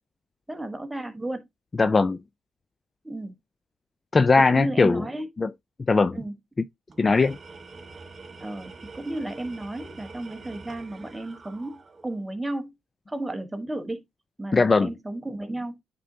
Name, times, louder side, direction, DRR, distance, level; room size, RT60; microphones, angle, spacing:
voice 1, 0.5-1.5 3.0-3.3 4.5-5.3 6.1-6.3 8.4-12.8 13.1-14.0 14.4-15.8, right 1 dB, 10° right, 1.2 m, -33 dB
voice 2, 1.8-2.2 4.1-5.0 5.4-5.5 5.9-6.2 7.0-7.4 14.5-14.9, left 3 dB, 30° left, 0.3 m, -19 dB
Tools, 6.9-12.3, right 3 dB, 35° right, 1.0 m, -45 dB
9.0 x 3.9 x 2.7 m
cardioid pair, 90°, 0 cm